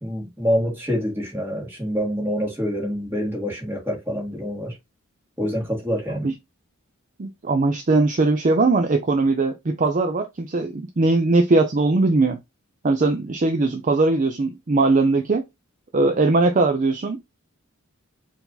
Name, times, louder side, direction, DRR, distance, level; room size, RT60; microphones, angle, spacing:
voice 1, 0.0-4.7 5.4-6.3, equal, 10° right, 1.9 m, -26 dB
voice 2, 7.2-12.4 12.8-15.4 15.9-17.2, right 3 dB, 35° right, 0.4 m, -20 dB
4.7 x 2.6 x 3.9 m
head